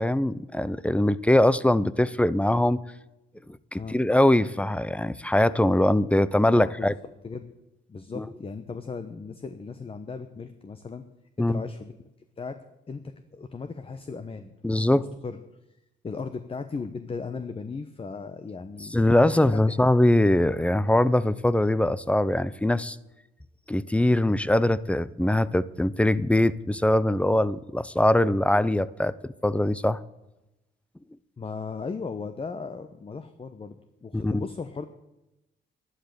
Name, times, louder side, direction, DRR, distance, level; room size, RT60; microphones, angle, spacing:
voice 1, 0.0-2.8 3.7-6.9 8.2-8.3 11.4-11.6 14.6-15.0 18.9-23.0 23.7-30.0 34.1-34.5, left 1 dB, 5° left, 18 dB, 0.6 m, -22 dB
voice 2, 6.5-6.9 7.2-7.5 7.9-11.0 11.4-11.9 12.4-12.6 12.9-13.0 13.3-15.4 16.0-19.9 31.4-34.8, left 4 dB, 30° left, 10 dB, 1.0 m, -37 dB
11.5 x 11.5 x 6.8 m, 0.94 s
cardioid pair, 90°, 20 cm